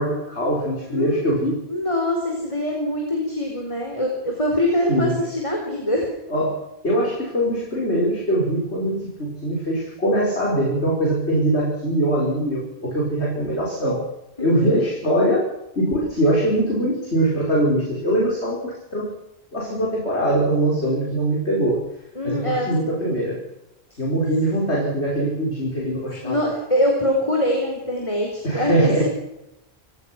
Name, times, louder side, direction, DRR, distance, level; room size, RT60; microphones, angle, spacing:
voice 1, 0.0-1.5 4.9-5.2 6.3-14.0 14.4-15.5 15.8-19.1 19.5-21.8 22.2-23.4 24.0-26.4 28.4-29.0, right 1 dB, 90° left, -4 dB, 5.8 m, -22 dB
voice 2, 0.9-1.4 1.7-6.1 14.4-14.8 18.3-18.5 22.2-23.2 26.2-28.3 28.5-29.0, left 1 dB, 30° left, 1 dB, 4.4 m, -24 dB
27.0 x 17.5 x 6.1 m, 0.89 s
omnidirectional pair, 1.1 m